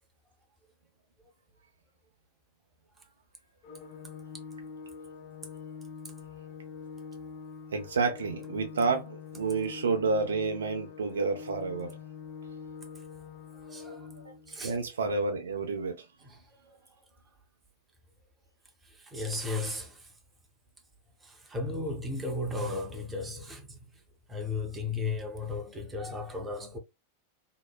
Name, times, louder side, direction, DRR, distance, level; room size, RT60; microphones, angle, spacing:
Organ, 3.6-14.6, left 6 dB, 40° left, 0.4 m, -44 dB
voice 1, 7.7-12.0 14.2-16.0, right 4 dB, 70° right, 0.5 m, -30 dB
voice 2, 13.5-14.2 14.5-14.8 16.2-16.8 18.8-20.1 21.2-23.8 24.3-26.8, left 3 dB, 15° right, 0.7 m, -35 dB
2.9 x 2.0 x 2.2 m
figure-of-eight pair, 90°, 0 cm